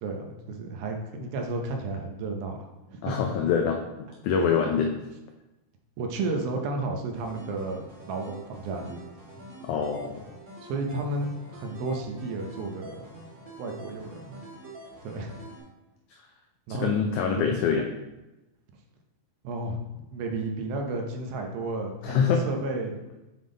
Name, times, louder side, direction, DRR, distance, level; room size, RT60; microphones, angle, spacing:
voice 1, 0.0-3.2 6.0-9.0 10.6-13.1 13.6-14.4 15.0-15.3 16.7-17.0 17.4-17.5 19.4-19.8 20.1-23.0, right 2 dB, 90° right, 3 dB, 2.6 m, -32 dB
voice 2, 3.0-4.9 9.6-10.2 16.7-17.9 22.0-22.5, left 6 dB, 85° left, 3 dB, 1.7 m, -25 dB
sound 1, 7.1-15.6, right 1 dB, 45° right, 0.9 m, -46 dB
7.5 x 3.6 x 3.8 m, 1.0 s
omnidirectional pair, 4.1 m